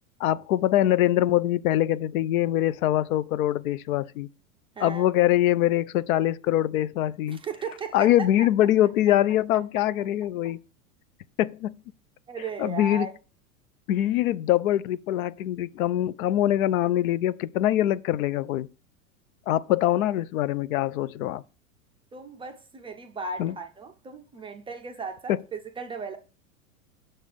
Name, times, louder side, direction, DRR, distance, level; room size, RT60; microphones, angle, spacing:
voice 1, 0.2-4.3 4.8-7.4 7.9-10.6 11.4-11.8 12.6-13.1 13.9-18.7 19.5-21.4 23.4-23.5 25.3-25.4, left 13 dB, 70° left, 0.5 m, -23 dB
voice 2, 4.8-5.1 7.3-8.1 8.4-8.5 12.3-13.1 22.1-26.2, right 4 dB, 15° right, 0.4 m, -36 dB
6.5 x 3.4 x 5.9 m
hypercardioid pair, 105°, 43 cm